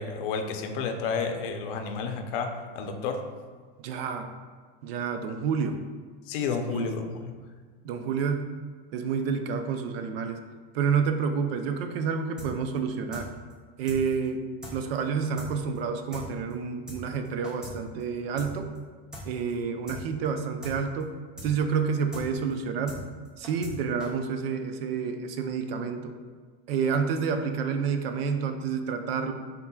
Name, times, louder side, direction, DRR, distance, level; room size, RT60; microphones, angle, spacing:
voice 1, 0.0-3.2 6.3-7.3, left 5 dB, 65° left, 5 dB, 0.6 m, -31 dB
voice 2, 3.8-4.3 4.8-5.8 6.7-7.0 7.8-8.5 8.9-10.4 10.7-13.3 13.8-18.7 19.3-21.2 21.4-23.0 23.4-26.2 26.7-29.3, right 6 dB, 90° right, 7 dB, 0.6 m, -29 dB
sound 1, 12.4-12.5 12.7-12.8 13.1-13.2 13.5-13.6 13.9-14.0 14.2-14.3 14.6-14.7 15.0-15.1 15.4-15.5 15.7-15.8 16.1-16.2 16.5-16.6 16.9-17.0 17.2-17.7 18.0-18.1 18.4-18.5 18.7-18.8 19.1-19.2 19.5-19.6 19.9-20.0 20.2-20.3 20.6-20.7 21.0-21.1 21.4-21.5 21.7-21.8 22.1-22.2 22.5-22.6 22.9-23.0 23.2-23.7 24.0-24.1, equal, 5° right, 0.3 m, -41 dB
5.5 x 3.6 x 2.2 m, 1.5 s
supercardioid pair, 170°, 29 cm